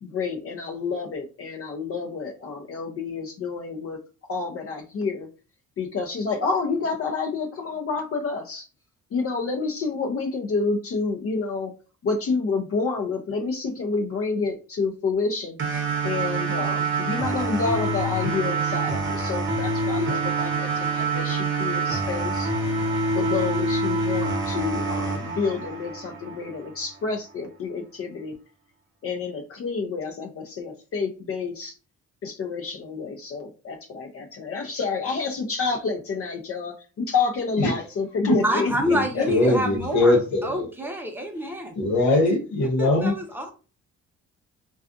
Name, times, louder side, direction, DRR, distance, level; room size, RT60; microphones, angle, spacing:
voice 1, 0.0-4.0 4.3-5.3 5.8-8.7 9.1-11.7 12.0-15.6 16.0-22.5 23.1-28.4 29.0-31.8 32.2-39.5, left 4 dB, 50° left, 0.5 m, -29 dB
sound 1, 15.6-26.6, right 3 dB, 40° right, 0.8 m, -26 dB
voice 2, 38.4-41.7 42.8-43.5, equal, 5° right, 0.7 m, -27 dB
voice 3, 39.3-40.7 41.8-43.1, left 2 dB, 70° left, 0.9 m, -21 dB
2.4 x 2.4 x 2.4 m
cardioid pair, 90°, 30 cm